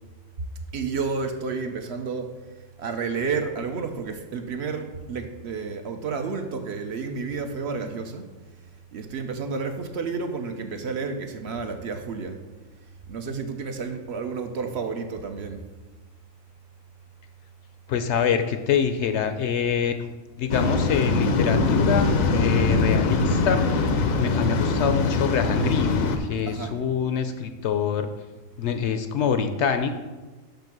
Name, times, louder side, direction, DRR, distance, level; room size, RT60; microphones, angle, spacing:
voice 1, 0.7-8.3 8.9-12.4 13.1-15.7 26.5-26.8, right 5 dB, 60° right, 6 dB, 0.9 m, -31 dB
voice 2, 17.9-19.9 20.4-28.1 28.6-29.9, left 7 dB, 65° left, 8 dB, 0.8 m, -25 dB
Waves surf, 20.5-26.2, left 3 dB, 90° left, 1.2 m, -22 dB
5.8 x 5.3 x 5.9 m, 1.2 s
omnidirectional pair, 1.4 m